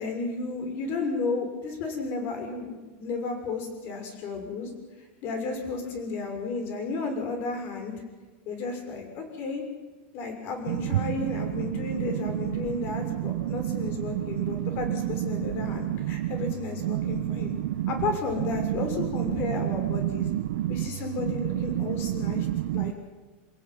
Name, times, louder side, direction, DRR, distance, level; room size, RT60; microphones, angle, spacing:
voice 1, 0.0-4.7 5.2-7.9 8.5-9.6 10.1-17.5 17.9-20.3 20.7-22.5 22.7-22.9, left 4 dB, 35° left, 5 dB, 6.3 m, -33 dB
voice 2, 13.2-13.8 14.4-14.6 15.6-16.3 16.9-17.9 20.0-20.7 21.8-21.9 22.3-22.9, right 14 dB, 70° right, 9 dB, 1.0 m, -29 dB
29.0 x 17.0 x 9.6 m, 1.2 s
supercardioid pair, 170°, 7 cm